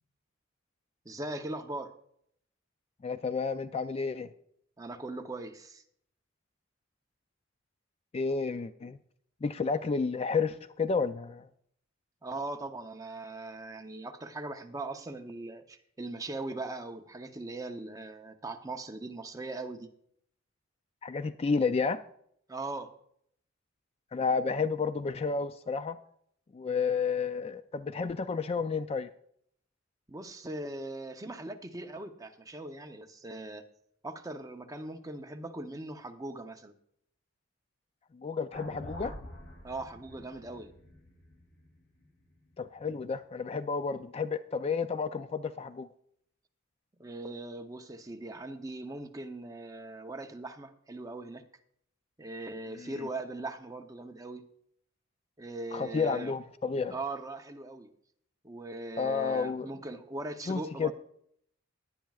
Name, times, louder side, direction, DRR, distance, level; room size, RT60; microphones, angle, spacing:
voice 1, 1.0-1.9 4.8-5.8 12.2-19.9 22.5-22.9 30.1-33.6 34.0-36.7 39.6-40.7 47.0-51.4 52.2-54.4 55.4-56.3 56.9-57.9 58.4-60.9, right 2 dB, 20° right, 5 dB, 0.7 m, -40 dB
voice 2, 3.0-4.3 8.1-9.0 9.4-11.5 21.0-22.0 24.1-26.0 26.5-29.1 38.1-39.1 42.6-45.9 52.8-52.9 55.7-56.9 59.0-59.7 60.5-60.9, left 5 dB, 30° left, 12 dB, 0.3 m, -31 dB
sound 1, 38.5-42.8, equal, 60° left, 2.5 m, -47 dB
17.5 x 10.5 x 2.4 m, 0.69 s
head